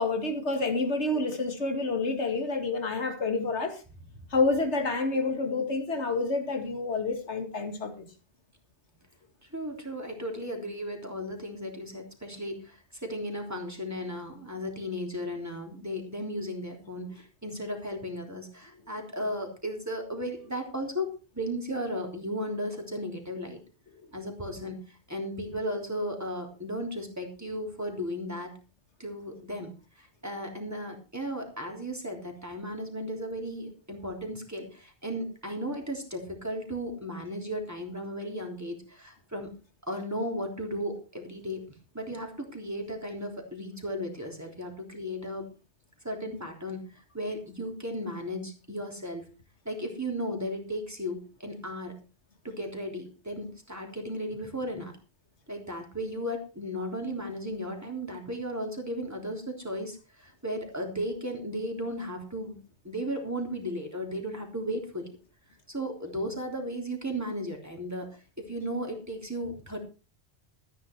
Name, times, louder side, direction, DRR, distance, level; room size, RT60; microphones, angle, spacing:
voice 1, 0.0-3.8 4.3-8.1, left 3 dB, 80° left, 2.3 m, -28 dB
voice 2, 9.5-23.6 24.1-28.5 29.0-39.5 39.9-41.6 41.9-45.5 46.0-49.2 49.7-52.0 52.4-54.9 55.5-65.1 65.7-69.8, equal, 15° right, 3.5 m, -35 dB
13.5 x 10.5 x 4.6 m
omnidirectional pair, 1.2 m